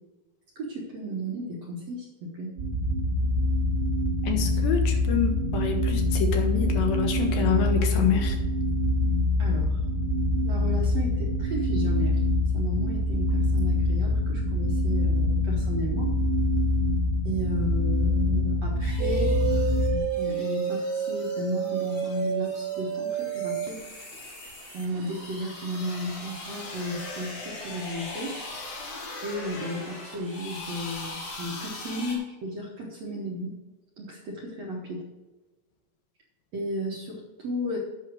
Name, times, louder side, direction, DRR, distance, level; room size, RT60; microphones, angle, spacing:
voice 1, 0.6-2.5 9.4-9.8 10.4-12.2 12.5-16.2 17.2-19.4 20.1-23.9 24.7-28.4 29.2-33.5 34.0-35.0 36.5-37.8, equal, 60° right, -2 dB, 1.9 m, -34 dB
sound 1, 2.6-20.0, left 2 dB, 40° right, 1.7 m, -25 dB
voice 2, 4.2-8.4, left 6 dB, 70° left, 4 dB, 2.6 m, -27 dB
sound 2, 18.8-32.2, left 3 dB, 90° left, 4.1 m, -41 dB
sound 3, 19.0-28.4 28.7-29.5 29.9-30.8 31.2-31.3, right 8 dB, 85° right, 2.4 m, -32 dB
8.5 x 6.5 x 6.3 m, 1.2 s
omnidirectional pair, 4.6 m